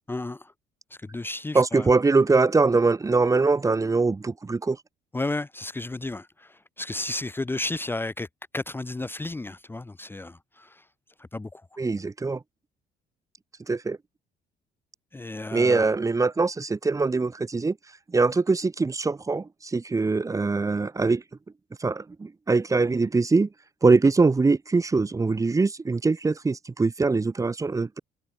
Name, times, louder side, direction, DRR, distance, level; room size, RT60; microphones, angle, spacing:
voice 1, 0.1-0.5 0.9-1.9 5.1-8.3 8.5-10.8 11.2-11.6 15.1-15.9, left 2 dB, 15° left, 1.0 m, -33 dB
voice 2, 1.5-4.8 11.8-12.4 13.7-14.0 15.5-17.8 18.1-21.2 21.8-23.5 23.8-28.0, right 3 dB, 20° right, 1.3 m, -22 dB
cardioid pair, 110°, 17 cm